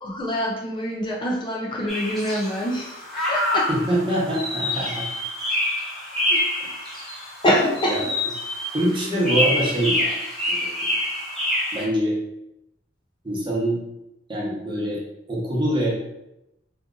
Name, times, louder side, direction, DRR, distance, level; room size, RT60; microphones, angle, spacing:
voice 1, 0.0-3.7 6.3-6.4 7.4-8.0, equal, 25° left, -3 dB, 0.4 m, -25 dB
sound 1, 1.9-11.8, left 1 dB, ahead, 0.9 m, -27 dB
voice 2, 3.7-5.1 7.9-8.0 8.7-10.2 10.5-10.9 11.7-12.2 13.2-13.8 14.3-15.0 15.3-16.0, right 1 dB, 25° right, -4 dB, 0.9 m, -24 dB
2.8 x 2.4 x 3.6 m, 0.87 s
head